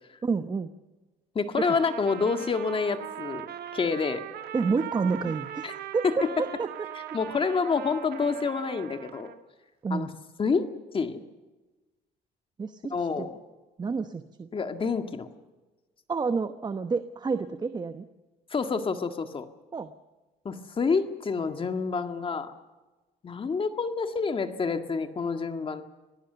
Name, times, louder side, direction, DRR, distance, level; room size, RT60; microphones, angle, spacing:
voice 1, 0.2-0.7 1.6-1.7 4.5-6.7 9.8-10.1 12.6-13.3 13.8-14.5 16.1-18.0 19.7-19.9, right 4 dB, 25° right, 10 dB, 1.0 m, -29 dB
voice 2, 1.4-3.5 3.7-4.3 5.6-5.7 6.0-6.2 7.1-9.3 9.9-10.1 10.4-11.2 12.9-13.4 14.5-15.3 18.5-19.5 20.5-22.5 23.2-25.8, left 5 dB, 30° left, 7 dB, 1.8 m, -28 dB
Trumpet, 1.6-9.4, right 11 dB, 70° right, 1.7 m, -40 dB
26.0 x 17.5 x 6.8 m, 1.2 s
cardioid pair, 110°, 17 cm